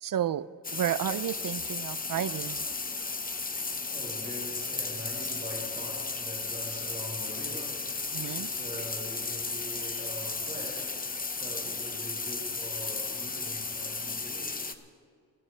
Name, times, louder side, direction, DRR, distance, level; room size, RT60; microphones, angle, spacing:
voice 1, 0.0-0.5 0.7-2.6 8.1-8.5, right 10 dB, 60° right, 0.5 m, -31 dB
sound 1, 0.6-14.7, left 4 dB, 20° left, 0.7 m, -34 dB
voice 2, 3.2-14.7, equal, 20° right, 4.8 m, -43 dB
24.5 x 13.5 x 3.3 m
wide cardioid pair, 125°, 38 cm